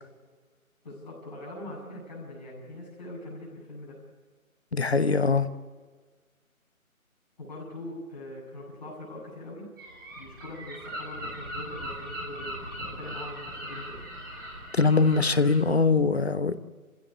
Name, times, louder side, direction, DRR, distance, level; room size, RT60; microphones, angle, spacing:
voice 1, 0.8-4.0 7.4-9.6 10.1-14.0, left 1 dB, 30° left, -3 dB, 7.9 m, -42 dB
voice 2, 4.7-5.5 14.7-16.5, left 4 dB, 45° left, 12 dB, 1.1 m, -22 dB
Gull seagull, 9.8-15.5, right 1 dB, 15° right, 3.8 m, -39 dB
27.5 x 16.5 x 8.4 m, 1.4 s
figure-of-eight pair, 175°, 43 cm